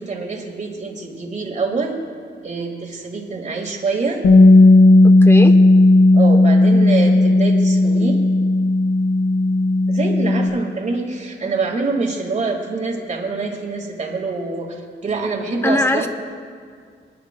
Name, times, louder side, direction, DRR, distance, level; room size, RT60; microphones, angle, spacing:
voice 1, 0.0-2.0 2.4-4.2 6.1-8.2 9.9-16.1, right 3 dB, 40° right, 1 dB, 1.8 m, -25 dB
Bass guitar, 4.2-10.5, left 2 dB, 70° left, 1.3 m, -13 dB
voice 2, 5.2-5.6 15.6-16.1, left 1 dB, 15° left, 7 dB, 0.8 m, -19 dB
28.0 x 10.5 x 2.2 m, 2.1 s
cardioid pair, 110°, 19 cm